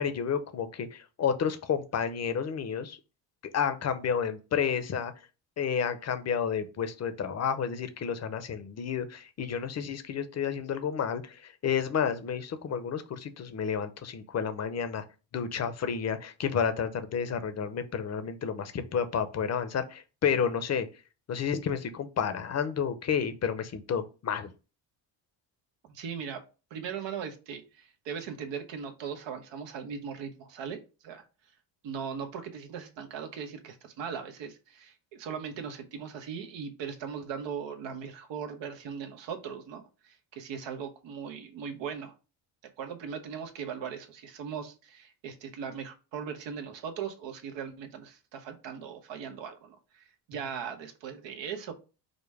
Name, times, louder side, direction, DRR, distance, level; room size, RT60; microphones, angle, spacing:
voice 1, 0.0-3.0 3.5-5.1 5.6-15.0 15.3-20.9 21.3-24.5, left 7 dB, 35° left, 10 dB, 0.7 m, -31 dB
voice 2, 25.9-26.4 26.7-31.2 31.8-42.1 42.8-51.7, right 7 dB, 80° right, 5 dB, 1.1 m, -39 dB
5.1 x 2.1 x 4.7 m, 0.32 s
cardioid pair, 115°, 44 cm